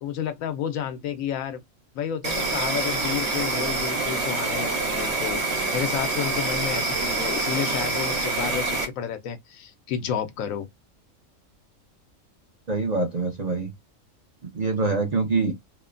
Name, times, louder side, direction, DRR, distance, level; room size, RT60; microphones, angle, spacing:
voice 1, 0.0-1.6 1.9-5.5 5.7-10.7, left 9 dB, 85° left, 1.0 m, -31 dB
Insect, 2.2-8.8, right 3 dB, 65° right, 1.4 m, -26 dB
voice 2, 12.7-13.7 14.5-15.5, right 3 dB, 45° right, 0.6 m, -24 dB
3.0 x 2.1 x 2.4 m
omnidirectional pair, 1.4 m